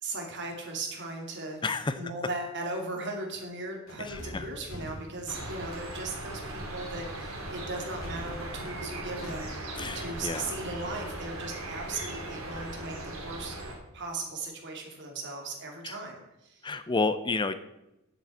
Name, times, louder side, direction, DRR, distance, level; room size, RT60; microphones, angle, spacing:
voice 1, 0.0-1.6 2.0-13.6 13.9-16.7, right 2 dB, 55° right, 2 dB, 2.6 m, -38 dB
voice 2, 1.6-2.0 4.3-4.4 9.8-10.5 15.8-15.9 16.6-17.5, left 3 dB, 20° left, 12 dB, 0.5 m, -30 dB
sound 1, 3.9-10.6, left 1 dB, 75° left, 2.5 m, -45 dB
sound 2, 5.3-13.7, right 1 dB, 75° right, 2.8 m, -39 dB
7.7 x 7.4 x 8.4 m, 0.93 s
head